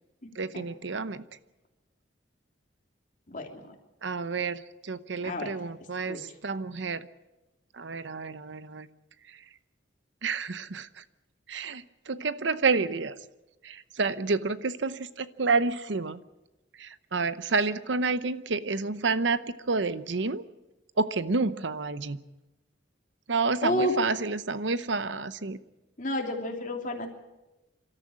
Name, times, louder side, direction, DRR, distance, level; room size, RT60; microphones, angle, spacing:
voice 1, 0.3-1.2 4.0-7.1 7.7-8.9 9.3-9.4 10.2-11.0 11.5-13.1 13.6-16.2 16.8-20.4 21.0-22.2 23.3-25.6, right 4 dB, 70° right, 14 dB, 0.8 m, -29 dB
voice 2, 3.3-3.7 5.2-5.5 6.1-6.2 23.6-23.9 26.0-27.1, left 1 dB, 45° left, 3 dB, 2.9 m, -30 dB
26.5 x 13.5 x 8.8 m, 1.0 s
head